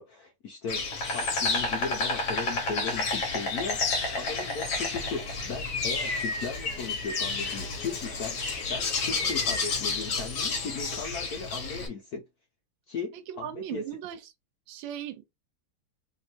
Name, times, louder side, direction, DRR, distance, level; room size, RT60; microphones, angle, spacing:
voice 1, 0.0-12.3 12.9-13.8, left 5 dB, 80° left, 0.8 m, -37 dB
Insect, 0.7-11.9, left 3 dB, 55° left, 1.0 m, -30 dB
voice 2, 13.1-14.2 14.7-15.3, right 10 dB, 70° right, 1.3 m, -38 dB
3.4 x 2.5 x 2.8 m
omnidirectional pair, 2.4 m